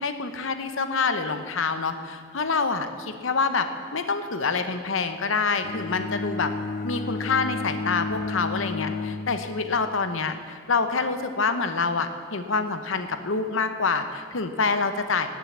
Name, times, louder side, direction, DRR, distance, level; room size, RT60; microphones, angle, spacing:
voice 1, 0.0-6.5 6.8-15.3, left 4 dB, 70° left, 9 dB, 0.8 m, -26 dB
Bowed string instrument, 5.6-9.9, left 3 dB, 40° left, 0.6 m, -32 dB
12.5 x 7.6 x 8.4 m, 2.3 s
head